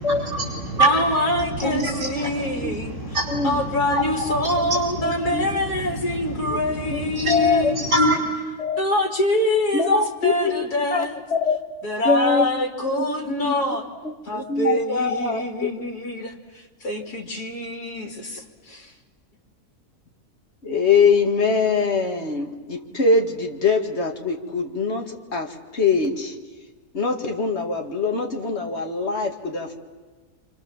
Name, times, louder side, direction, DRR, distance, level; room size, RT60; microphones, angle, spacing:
voice 1, 0.0-8.2, right 1 dB, 50° right, 8.1 m, -26 dB
voice 2, 0.8-3.0 3.4-7.8 8.8-11.2 11.8-13.8 14.3-16.3 16.8-18.9, left 1 dB, 75° left, 3.4 m, -25 dB
voice 3, 3.3-3.6 4.6-4.7 5.0-5.5 6.5-6.6 6.9-7.7 8.6-8.8 9.7-10.6 10.9-11.6 12.0-12.5 12.8-13.1 13.4-13.6 14.0-15.7 20.6-26.4 26.9-29.8, left 4 dB, 45° left, 2.3 m, -23 dB
27.5 x 26.5 x 7.3 m
omnidirectional pair, 1.7 m